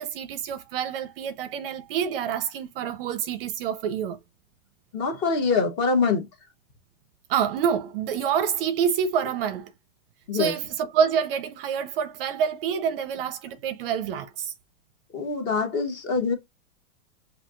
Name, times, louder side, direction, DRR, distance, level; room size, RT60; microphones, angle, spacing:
voice 1, 0.0-4.2 7.3-9.7 10.3-14.5, right 7 dB, 45° right, 0.6 m, -27 dB
voice 2, 4.9-6.3 10.3-10.6 15.1-16.3, left 4 dB, 25° left, 1.0 m, -24 dB
5.6 x 2.7 x 2.4 m
hypercardioid pair, 140°, 41 cm